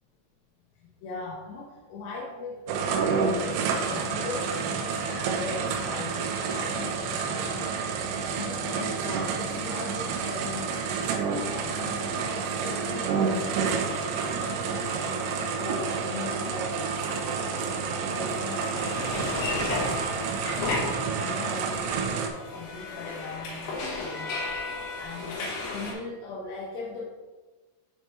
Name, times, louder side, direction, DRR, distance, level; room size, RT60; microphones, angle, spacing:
voice 1, 0.8-20.8 21.1-27.0, left 3 dB, 90° left, -3 dB, 2.4 m, -40 dB
sound 1, 2.7-22.3, right 5 dB, 90° right, 3.4 m, -29 dB
sound 2, 18.7-21.6 21.8-25.9, left 3 dB, 70° left, 2.4 m, -33 dB
9.9 x 4.4 x 3.1 m, 1.3 s
omnidirectional pair, 5.9 m